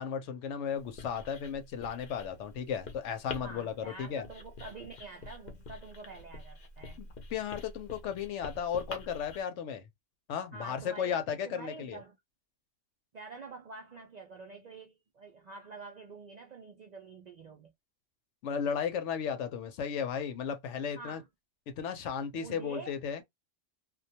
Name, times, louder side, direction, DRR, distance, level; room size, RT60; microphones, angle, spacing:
voice 1, 0.0-4.2 7.0-9.8 10.3-12.0 18.4-21.2 21.7-23.2, left 7 dB, 80° left, 0.9 m, -35 dB
Writing, 0.8-9.4, left 3 dB, 55° left, 0.7 m, -47 dB
voice 2, 3.4-7.0 10.5-12.2 13.1-17.7 21.0-21.3 22.3-23.0, right 3 dB, 60° right, 0.4 m, -47 dB
2.3 x 2.2 x 2.7 m
omnidirectional pair, 1.2 m